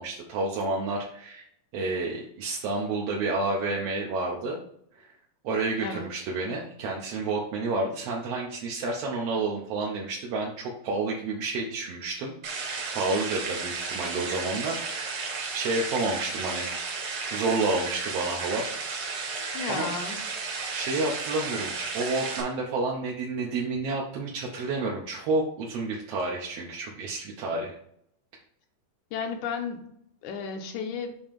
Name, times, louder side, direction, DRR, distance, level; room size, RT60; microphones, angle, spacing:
voice 1, 0.0-1.5 1.7-4.6 5.0-5.1 5.4-12.3 12.9-16.7 17.3-18.7 19.6-19.9 20.7-27.8, right 3 dB, 70° right, -2 dB, 1.6 m, -30 dB
sound 1, 12.4-22.4, right 4 dB, 55° right, 1.6 m, -33 dB
voice 2, 19.5-20.2 29.1-29.8 30.2-31.2, left 6 dB, 80° left, 5 dB, 2.1 m, -33 dB
7.2 x 2.9 x 5.1 m, 0.71 s
omnidirectional pair, 3.5 m